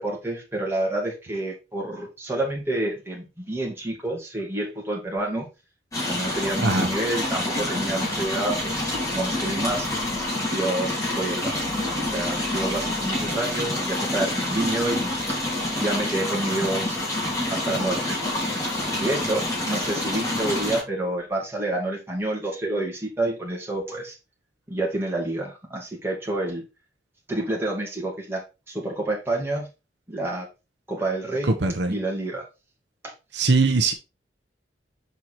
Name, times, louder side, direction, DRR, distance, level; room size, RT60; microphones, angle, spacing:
voice 1, 0.0-5.5 6.1-9.9 10.5-11.7 11.9-15.5 15.8-17.0 17.5-18.2 19.0-24.2 24.7-26.6 27.3-29.7 30.1-30.5 30.9-31.5 31.9-32.5 33.0-33.1, right 2 dB, 15° right, -2 dB, 2.4 m, -28 dB
sound 1, 5.9-20.8, left 1 dB, 20° left, 2.9 m, -27 dB
voice 2, 31.6-31.9 33.3-33.9, right 3 dB, 70° right, 5 dB, 0.9 m, -21 dB
6.5 x 4.6 x 4.2 m, 0.27 s
head